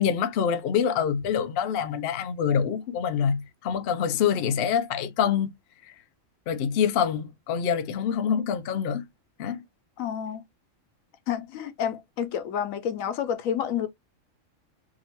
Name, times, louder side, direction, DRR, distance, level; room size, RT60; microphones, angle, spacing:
voice 1, 0.0-5.5 6.5-9.0 9.4-9.6, left 8 dB, 65° left, 0.6 m, -26 dB
voice 2, 10.0-10.4 11.3-13.9, left 9 dB, 90° left, 1.0 m, -29 dB
2.8 x 2.5 x 2.9 m
omnidirectional pair, 1.3 m